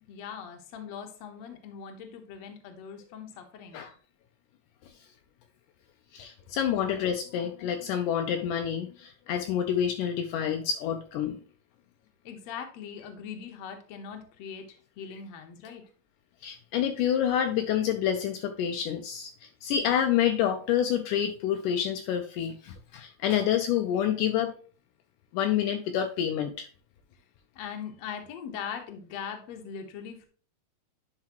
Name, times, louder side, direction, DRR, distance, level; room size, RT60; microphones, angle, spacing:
voice 1, 0.1-3.9 12.2-15.8 27.6-30.3, left 7 dB, 60° left, 4 dB, 2.0 m, -41 dB
voice 2, 6.1-11.4 16.4-24.5 25.3-26.7, left 9 dB, 80° left, 5 dB, 2.1 m, -28 dB
10.5 x 4.8 x 3.0 m, 0.41 s
omnidirectional pair, 3.8 m